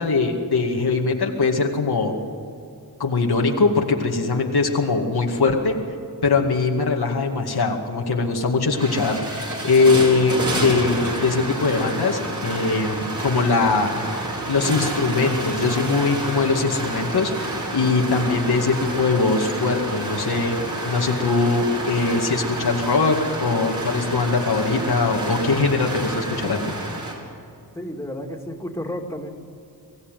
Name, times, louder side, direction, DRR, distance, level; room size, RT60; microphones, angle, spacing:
voice 1, 0.0-2.1 3.0-5.8 6.2-14.0 14.5-26.7, left 3 dB, 90° left, 1 dB, 2.3 m, -21 dB
sound 1, 8.2-8.3 8.6-27.1, right 1 dB, 50° right, 4.9 m, -29 dB
voice 2, 27.7-29.3, equal, 5° left, 0 dB, 2.6 m, -31 dB
23.0 x 15.5 x 9.3 m, 2.5 s
wide cardioid pair, 90°, 37 cm